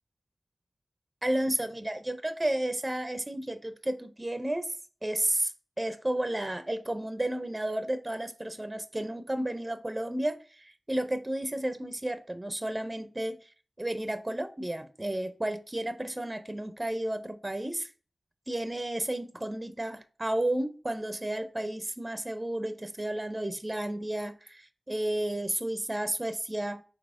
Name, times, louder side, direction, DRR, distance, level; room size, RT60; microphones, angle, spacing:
voice 1, 1.2-4.7 5.0-13.5 13.8-17.9 18.5-26.8, right 1 dB, 25° right, 0.4 m, -32 dB
4.1 x 3.1 x 3.5 m
cardioid pair, 45°, 0 cm